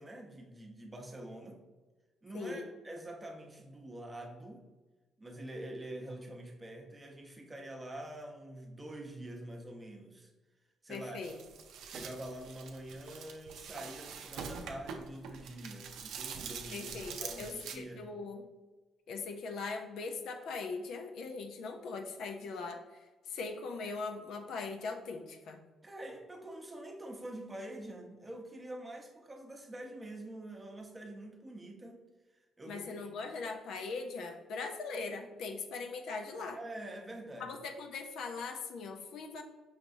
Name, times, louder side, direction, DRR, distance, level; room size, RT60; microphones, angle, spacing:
voice 1, 0.0-1.6 2.2-4.6 5.2-10.3 10.8-11.2 11.8-16.9 17.2-18.1 25.8-32.0 32.6-33.1 36.5-37.5, right 1 dB, 20° right, 2 dB, 0.7 m, -46 dB
voice 2, 2.3-2.7 10.9-11.4 16.7-18.4 19.1-25.6 32.7-36.6 37.4-39.4, left 4 dB, 80° left, 4 dB, 0.5 m, -40 dB
sound 1, 11.2-17.8, right 6 dB, 85° right, 0.4 m, -44 dB
5.6 x 3.0 x 2.6 m, 1.2 s
cardioid pair, 90°, 0 cm